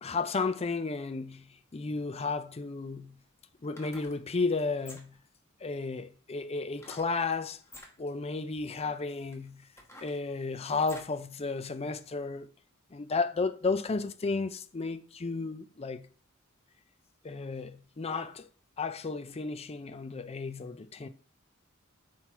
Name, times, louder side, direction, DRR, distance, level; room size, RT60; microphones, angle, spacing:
voice 1, 0.0-3.2 3.6-5.2 5.6-7.6 8.0-9.7 10.0-12.5 12.9-16.1 17.2-18.5 18.8-21.1, left 4 dB, 30° left, 0.5 m, -33 dB
sound 1, 3.6-4.2 4.7-5.3 6.8-7.1 7.6-7.9 8.7-8.8 9.3-11.2 11.6-11.7, left 1 dB, 15° left, 1.2 m, -50 dB
5.8 x 4.5 x 4.6 m
head